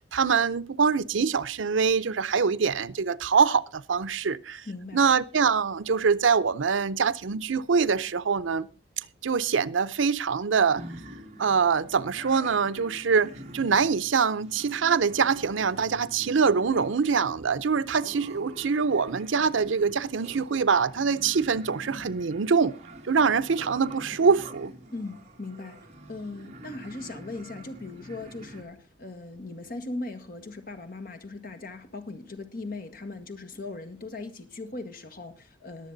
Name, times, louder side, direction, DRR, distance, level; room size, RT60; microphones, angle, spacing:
voice 1, 0.0-4.7 4.9-8.7 9.2-10.8 11.4-22.8 23.0-24.7, right 5 dB, 85° right, 0.6 m, -24 dB
voice 2, 4.7-5.0 24.9-25.8 26.1-35.9, left 2 dB, 50° left, 1.6 m, -39 dB
sound 1, 10.7-28.6, right 1 dB, 35° right, 2.3 m, -46 dB
21.0 x 7.3 x 3.9 m
head